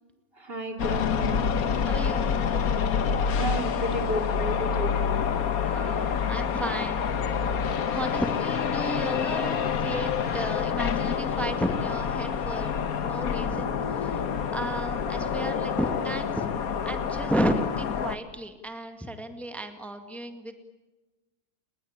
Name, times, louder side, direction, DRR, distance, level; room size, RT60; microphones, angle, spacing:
voice 1, 0.4-1.4 3.4-5.0, right 1 dB, 40° right, 5 dB, 3.2 m, -32 dB
sound 1, 0.8-18.2, left 7 dB, 70° left, 1.6 m, -27 dB
voice 2, 1.8-2.3 5.6-7.1 7.9-16.5 16.8-20.6, right 1 dB, ahead, 7 dB, 2.0 m, -33 dB
29.5 x 20.5 x 8.8 m, 1.2 s
omnidirectional pair, 1.6 m